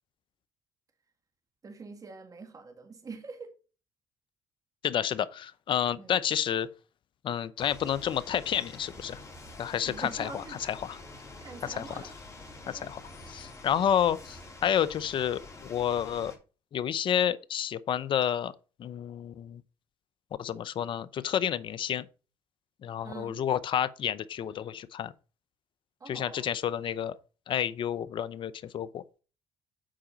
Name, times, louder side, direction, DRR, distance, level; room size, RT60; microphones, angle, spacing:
voice 1, 1.6-3.5 6.0-6.2 9.9-10.6 11.4-12.2 12.6-12.9 13.2-13.6 23.0-23.4 26.0-26.5, right 4 dB, 35° right, 1.8 m, -45 dB
voice 2, 4.8-6.7 7.2-9.2 9.6-11.0 11.6-11.9 12.7-13.0 13.3-16.3 16.7-18.5 18.8-19.6 20.4-22.1 22.8-25.1 26.1-27.1 27.5-29.0, left 9 dB, 55° left, 0.7 m, -30 dB
sound 1, 7.6-16.4, left 2 dB, 30° left, 3.0 m, -47 dB
7.6 x 5.0 x 5.6 m
supercardioid pair, 70°, 10 cm